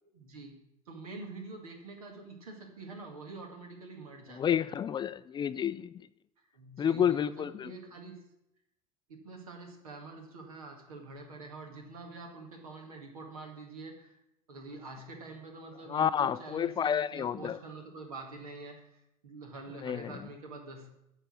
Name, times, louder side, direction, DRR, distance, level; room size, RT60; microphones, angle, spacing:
voice 1, 0.1-0.6 0.9-4.7 6.5-8.2 9.1-14.2 14.5-20.9, right 3 dB, 75° right, 3 dB, 1.9 m, -46 dB
voice 2, 4.3-6.1 6.8-7.7 15.9-17.6 19.8-20.2, left 8 dB, 25° left, 15 dB, 0.3 m, -30 dB
9.9 x 6.6 x 6.2 m, 0.85 s
figure-of-eight pair, 70°, 19 cm